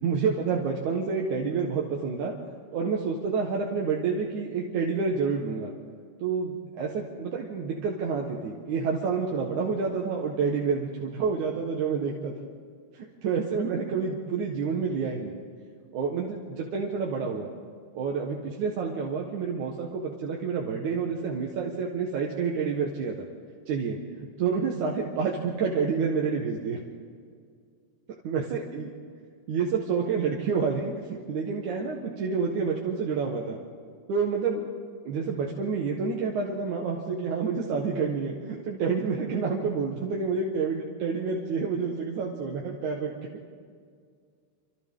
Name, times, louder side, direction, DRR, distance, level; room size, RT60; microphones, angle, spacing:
voice 1, 0.0-2.3 2.7-5.7 6.2-12.3 12.9-15.4 15.9-17.5 17.9-23.3 23.7-24.0 24.4-26.8 28.2-28.9 29.5-33.6 34.1-34.7 35.1-43.1, right 5 dB, 80° right, -2 dB, 3.0 m, -28 dB
28.5 x 26.5 x 3.8 m, 2.1 s
omnidirectional pair, 3.4 m